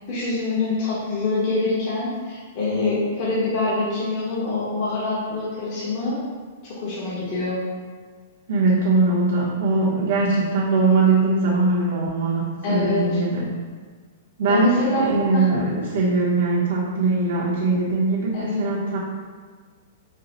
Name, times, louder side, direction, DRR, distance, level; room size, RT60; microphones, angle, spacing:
voice 1, 0.1-6.2 6.6-7.6 12.6-13.0 14.5-15.4 18.3-18.7, left 2 dB, 35° left, -8 dB, 1.0 m, -25 dB
voice 2, 8.5-13.4 14.4-19.0, right 3 dB, 65° right, -6 dB, 0.8 m, -21 dB
5.3 x 2.1 x 3.9 m, 1.5 s
hypercardioid pair, 170°, 0 cm